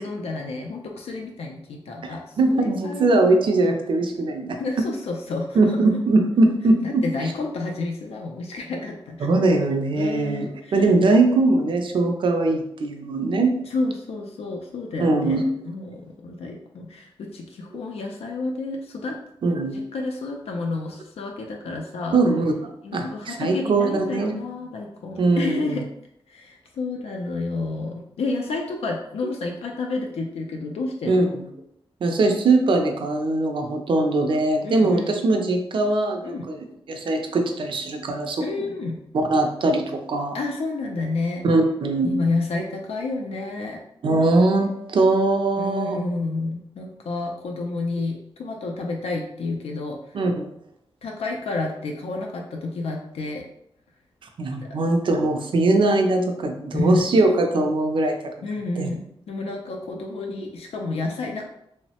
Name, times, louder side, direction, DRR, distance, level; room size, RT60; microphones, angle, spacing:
voice 1, 0.0-3.2 4.6-5.8 6.8-9.3 9.9-10.9 13.7-19.2 19.7-22.2 22.8-25.8 26.3-31.3 34.6-35.1 36.2-36.4 38.4-39.0 40.3-41.4 42.0-43.8 45.6-50.2 51.0-53.4 54.6-54.7 56.7-57.0 58.4-61.5, left 3 dB, 85° left, 1 dB, 0.4 m, -30 dB
voice 2, 2.0-4.8 5.6-7.0 9.2-13.5 15.0-15.4 19.4-19.8 22.1-22.5 22.9-24.3 25.2-25.8 31.1-31.5 32.0-38.5 39.1-40.4 41.4-42.1 44.0-46.0 50.1-50.5 54.4-58.3 58.8-58.9, right 2 dB, 55° right, 4 dB, 0.4 m, -21 dB
3.1 x 2.0 x 2.8 m, 0.74 s
wide cardioid pair, 170°, 10 cm